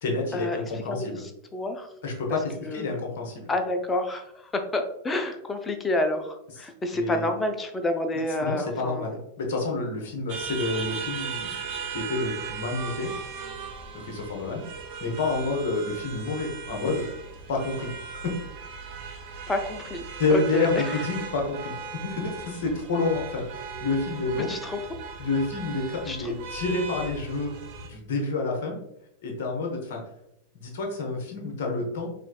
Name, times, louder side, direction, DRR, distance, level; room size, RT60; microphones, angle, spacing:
voice 1, 0.0-1.2 2.0-3.5 6.6-6.7 6.9-7.3 8.4-11.5 11.9-13.1 13.9-14.7 15.0-17.0 17.5-18.3 20.2-24.6 25.2-27.5 27.8-28.8 29.2-30.0 30.5-32.1, left 3 dB, 55° left, 0 dB, 0.8 m, -29 dB
voice 2, 0.9-1.9 2.6-3.0 3.5-9.1 19.5-20.0 20.3-21.1 24.5-24.8 26.1-26.3, left 2 dB, 15° left, 6 dB, 0.4 m, -29 dB
sound 1, 10.3-27.9, right 6 dB, 45° right, 0.5 m, -38 dB
4.4 x 2.5 x 2.3 m, 0.80 s
figure-of-eight pair, 90°, 0 cm